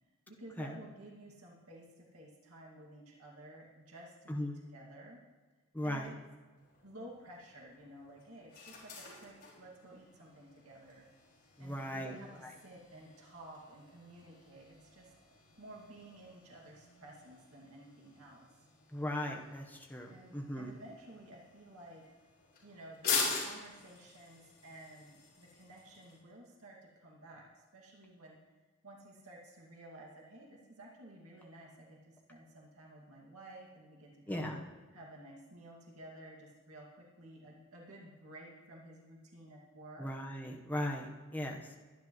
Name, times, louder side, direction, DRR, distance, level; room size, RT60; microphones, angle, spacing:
voice 1, 0.3-5.2 5.8-6.1 6.8-11.1 11.6-15.1 15.6-18.5 20.1-22.0 22.6-28.4 28.8-34.5 34.9-40.1, right 1 dB, 80° right, -2 dB, 2.2 m, -53 dB
voice 2, 4.3-4.6 5.7-6.1 11.6-12.1 18.9-20.7 34.3-34.6 40.0-41.8, left 1 dB, 10° left, 0 dB, 1.1 m, -38 dB
sound 1, 6.6-26.2, left 5 dB, 45° left, 4.8 m, -44 dB
22.0 x 10.5 x 3.1 m, 1.3 s
head